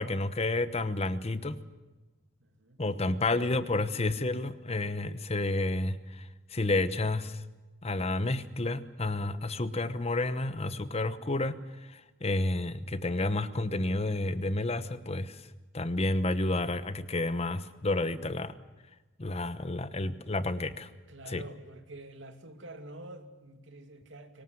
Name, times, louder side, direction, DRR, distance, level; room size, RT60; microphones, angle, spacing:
voice 1, 0.0-1.6 2.8-6.2 6.5-7.4 7.8-11.6 11.9-15.4 15.7-18.6 19.2-20.9 21.3-21.4, left 2 dB, 35° left, 13 dB, 1.1 m, -30 dB
voice 2, 2.4-2.8 21.1-24.4, right 2 dB, 85° right, 7 dB, 2.6 m, -47 dB
24.0 x 19.0 x 7.8 m, 1.2 s
head